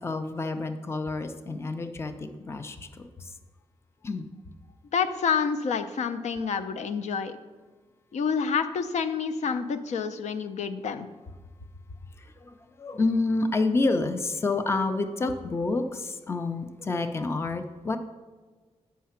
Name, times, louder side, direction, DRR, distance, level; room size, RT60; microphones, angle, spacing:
voice 1, 0.0-3.3 4.0-4.3 12.2-18.0, left 3 dB, 20° left, 8 dB, 0.5 m, -29 dB
voice 2, 4.9-7.4 8.1-11.1, left 6 dB, 80° left, 10 dB, 0.6 m, -28 dB
8.4 x 5.7 x 5.7 m, 1.4 s
wide cardioid pair, 175°, 12 cm